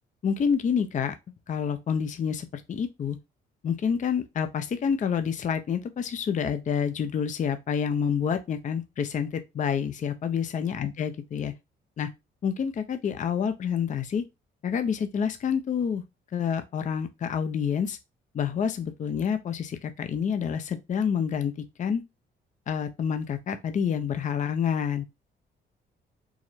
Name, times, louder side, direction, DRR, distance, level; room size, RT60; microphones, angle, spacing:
voice 1, 0.2-1.2 1.5-3.2 3.6-11.5 12.0-12.1 12.4-14.2 14.6-16.0 16.3-18.0 18.3-22.0 22.7-25.0, left 7 dB, 40° left, 0.5 m, -28 dB
4.7 x 2.1 x 4.1 m
cardioid pair, 90°, 20 cm